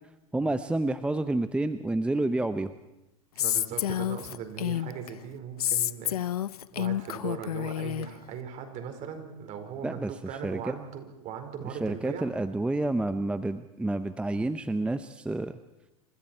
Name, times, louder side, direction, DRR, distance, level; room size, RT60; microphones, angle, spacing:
voice 1, 0.3-2.7 9.8-10.1 10.4-10.6 11.7-15.6, right 2 dB, 5° right, 11 dB, 0.7 m, -29 dB
voice 2, 3.3-6.2 6.7-12.3, right 7 dB, 40° right, 6 dB, 4.7 m, -39 dB
Female speech woman speaking, 3.4-5.1 5.6-8.1, left 11 dB, 80° left, 0.9 m, -29 dB
28.5 x 26.5 x 4.5 m, 0.93 s
hypercardioid pair, 115°, 19 cm